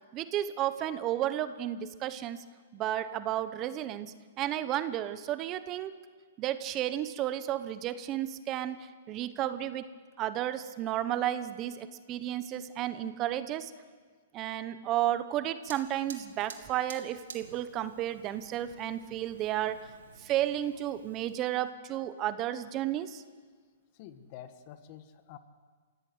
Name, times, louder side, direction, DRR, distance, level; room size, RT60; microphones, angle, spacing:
voice 1, 0.1-2.4 2.7-6.0 6.4-9.9 10.2-13.7 14.3-19.9 20.2-23.2, right 12 dB, 30° right, 13 dB, 0.9 m, -32 dB
Fire, 15.6-21.4, right 6 dB, 80° right, 2.4 m, -51 dB
voice 2, 24.0-25.4, left 10 dB, 40° left, 10 dB, 1.6 m, -48 dB
26.0 x 17.0 x 7.9 m, 1.5 s
hypercardioid pair, 140°, 0 cm